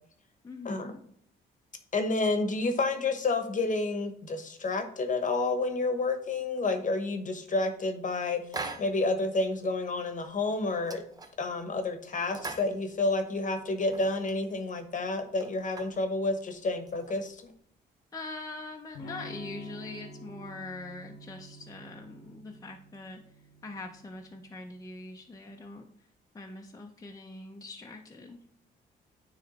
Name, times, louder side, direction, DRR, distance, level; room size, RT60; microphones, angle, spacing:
voice 1, 0.4-1.0 18.1-23.2 23.6-25.9 26.3-28.4, left 2 dB, 15° left, 2 dB, 0.7 m, -42 dB
voice 2, 1.9-8.4 8.8-11.0 11.4-17.5, left 3 dB, 40° left, 7 dB, 1.1 m, -30 dB
sound 1, 8.5-9.2 9.5-9.6 10.0-10.2 10.5-11.7 12.2-13.3 13.7-14.4 14.9-15.0 15.2-16.0 16.7-17.6, right 3 dB, 20° right, 0.8 m, -42 dB
Electric guitar / Strum, 18.9-24.7, equal, 90° left, 1.2 m, -49 dB
9.5 x 3.3 x 4.1 m, 0.62 s
cardioid pair, 90°, 20 cm